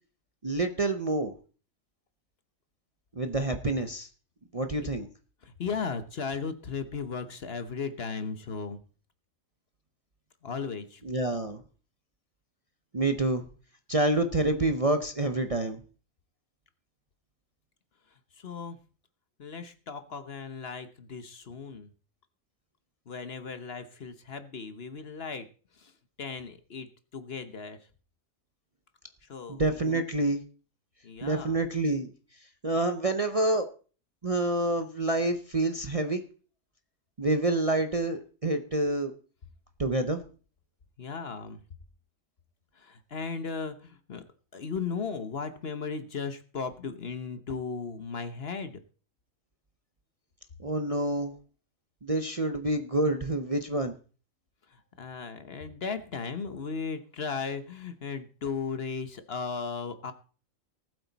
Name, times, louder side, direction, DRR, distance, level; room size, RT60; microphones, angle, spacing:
voice 1, 0.4-1.3 3.1-4.1 4.5-5.1 11.0-11.6 12.9-13.4 13.9-15.8 29.5-30.4 31.2-32.1 32.6-33.6 34.2-36.2 37.2-39.1 39.8-40.2 50.6-51.3 52.0-53.9, right 2 dB, 30° right, 7 dB, 0.8 m, -27 dB
voice 2, 5.4-8.8 10.4-11.0 18.3-18.8 19.4-21.9 23.1-25.5 25.7-25.9 26.2-27.8 29.2-30.0 31.0-31.6 41.0-41.6 42.7-44.2 44.5-48.8 54.7-60.1, left 5 dB, 50° left, 10 dB, 1.1 m, -36 dB
19.0 x 8.0 x 4.1 m, 0.39 s
omnidirectional pair, 1.4 m